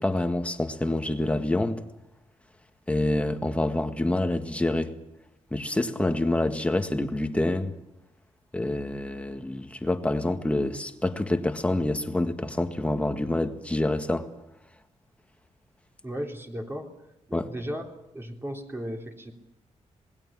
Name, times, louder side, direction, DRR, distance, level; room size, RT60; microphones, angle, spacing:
voice 1, 0.0-1.8 2.9-4.9 5.5-7.7 8.5-14.3 17.3-17.5, left 1 dB, 10° left, 1.8 m, -27 dB
voice 2, 16.0-16.9 17.3-17.8 18.1-19.3, equal, 20° right, 3.5 m, -35 dB
27.0 x 20.0 x 7.5 m
cardioid pair, 115°, 12 cm